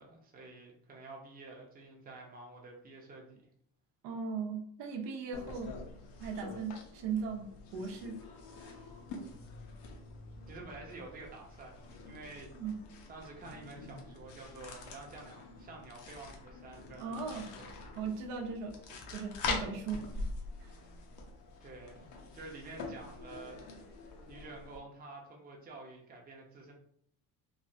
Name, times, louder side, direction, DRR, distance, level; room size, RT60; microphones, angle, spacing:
voice 1, 0.0-3.5 9.3-9.6 10.5-12.5 13.1-17.7 21.6-23.9 24.3-26.7, right 3 dB, 20° right, 0 dB, 0.6 m, -50 dB
voice 2, 4.0-5.7 6.2-8.2 8.6-8.7 12.5-12.7 17.0-17.4 18.0-20.1 20.6-20.7, right 5 dB, 75° right, 2 dB, 0.7 m, -38 dB
sound 1, 5.3-24.8, left 3 dB, 70° left, 0.8 m, -45 dB
3.2 x 2.0 x 2.6 m, 0.66 s
cardioid pair, 115°, 42 cm